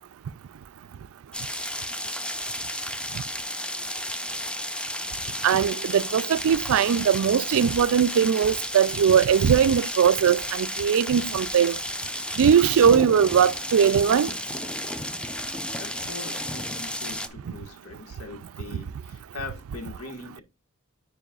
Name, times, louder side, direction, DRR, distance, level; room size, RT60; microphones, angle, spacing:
sound 1, 1.3-17.3, left 1 dB, 5° left, 0.6 m, -33 dB
voice 1, 5.4-11.8 12.4-14.3, right 7 dB, 65° right, 0.3 m, -20 dB
voice 2, 15.8-20.4, left 3 dB, 85° left, 1.8 m, -41 dB
10.0 x 4.7 x 2.4 m
head